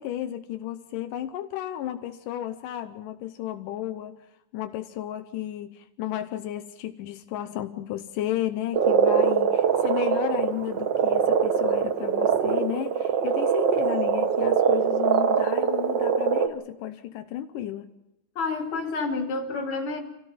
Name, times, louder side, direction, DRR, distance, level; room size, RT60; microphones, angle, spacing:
voice 1, 0.0-4.2 4.5-17.9, left 12 dB, 85° left, 8 dB, 2.5 m, -33 dB
Frog, 8.7-16.5, right 7 dB, 60° right, 1.2 m, -23 dB
voice 2, 18.4-20.0, left 3 dB, 45° left, 0 dB, 3.5 m, -29 dB
27.5 x 16.5 x 5.9 m, 0.90 s
omnidirectional pair, 3.7 m